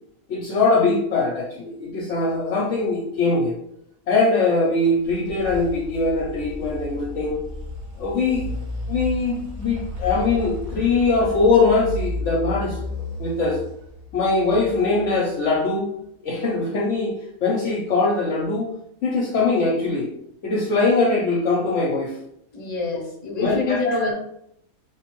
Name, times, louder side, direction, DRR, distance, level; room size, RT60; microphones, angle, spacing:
voice 1, 0.3-3.5 4.1-7.4 8.0-8.4 8.9-12.8 13.2-13.6 14.1-15.9 16.2-18.7 19.0-20.1 20.4-22.2 23.4-24.1, left 3 dB, 65° left, -3 dB, 0.9 m, -21 dB
sound 1, 4.8-15.6, left 2 dB, 50° right, 0.9 m, -33 dB
voice 2, 22.5-24.1, left 3 dB, 35° left, -1 dB, 1.0 m, -26 dB
4.0 x 3.1 x 3.0 m, 0.75 s
omnidirectional pair, 1.5 m